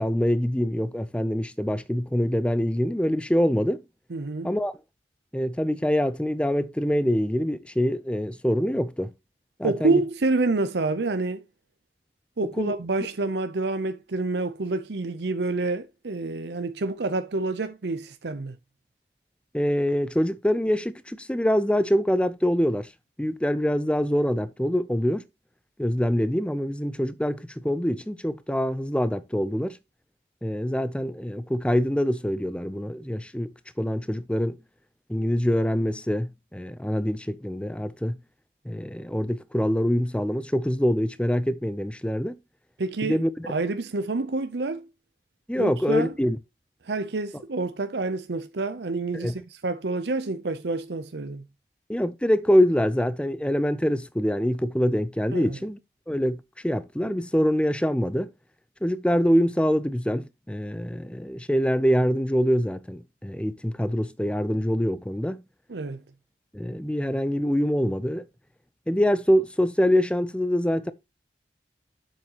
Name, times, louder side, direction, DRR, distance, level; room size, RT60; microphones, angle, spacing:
voice 1, 0.0-3.8 4.4-4.7 5.3-9.1 9.6-10.0 12.6-12.7 19.5-22.9 23.2-25.2 25.8-29.8 30.4-33.5 33.8-34.6 35.1-38.2 38.7-42.3 43.0-43.5 45.5-46.4 49.1-49.3 51.9-55.8 56.1-58.3 58.8-65.4 66.5-68.2 68.9-70.9, equal, 5° left, 0.6 m, -25 dB
voice 2, 4.1-4.5 9.6-11.4 12.4-18.6 42.8-44.8 45.6-46.1 46.9-51.4 55.3-55.6 65.7-66.0, right 3 dB, 80° right, 0.7 m, -28 dB
7.8 x 7.3 x 3.0 m
head